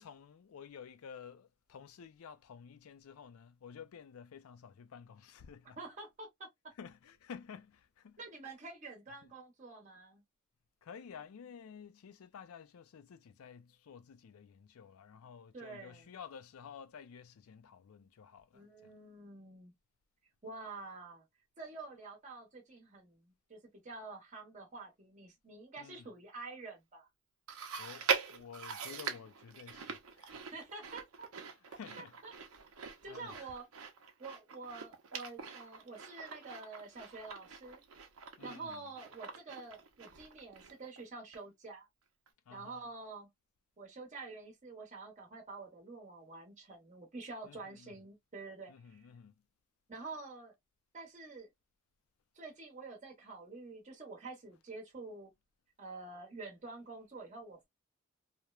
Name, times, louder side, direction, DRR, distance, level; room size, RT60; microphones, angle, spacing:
voice 1, 0.0-5.8 6.8-8.2 9.2-9.3 10.8-18.9 25.8-26.1 27.8-30.5 31.4-32.4 33.0-33.5 38.4-38.9 42.5-42.9 47.4-48.0 48.7-49.3, left 7 dB, 75° left, 0.4 m, -52 dB
voice 2, 5.8-6.7 8.2-10.2 15.5-16.1 18.5-19.7 20.4-21.2 21.6-27.1 30.5-31.3 32.0-32.3 33.0-33.7 34.2-37.8 38.4-41.9 42.5-43.3 43.8-49.0 49.9-50.5 50.9-51.5 52.3-55.3 55.8-57.7, right 3 dB, 35° right, 0.8 m, -48 dB
Chewing mastication, 27.5-41.0 41.3-41.4 42.3-42.4, right 6 dB, 80° right, 0.6 m, -42 dB
3.0 x 2.0 x 2.3 m
head